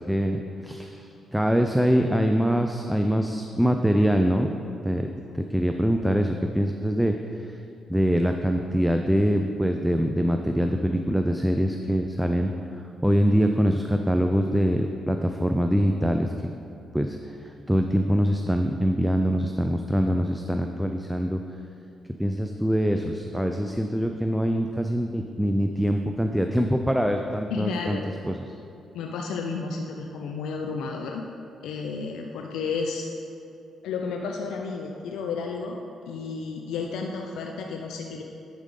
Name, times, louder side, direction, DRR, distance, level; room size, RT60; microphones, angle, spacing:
voice 1, 0.1-4.5 4.8-5.1 5.3-7.1 7.4-7.6 7.9-12.5 13.0-16.5 16.9-21.4 22.2-28.0 28.3-28.4, equal, 5° right, 4 dB, 0.4 m, -24 dB
voice 2, 27.5-28.1 28.9-31.3 31.6-33.1 33.8-38.2, left 4 dB, 85° left, 2 dB, 0.4 m, -32 dB
10.0 x 5.0 x 3.8 m, 2.8 s
cardioid pair, 75°, 0 cm